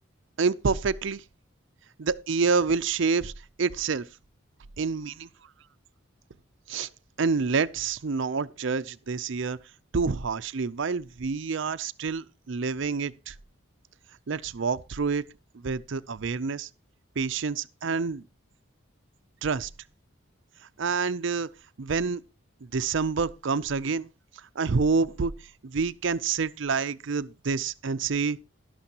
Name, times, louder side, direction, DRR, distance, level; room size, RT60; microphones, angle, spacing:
voice 1, 0.4-1.2 2.0-3.3 3.6-4.0 4.8-5.3 6.7-6.9 7.2-9.6 9.9-13.3 14.3-15.2 15.5-16.7 17.2-18.3 19.4-19.7 20.8-21.5 21.8-22.2 22.6-24.1 24.6-25.3 25.6-28.4, right 5 dB, 65° right, 0.5 m, -27 dB
11.5 x 11.5 x 2.9 m
head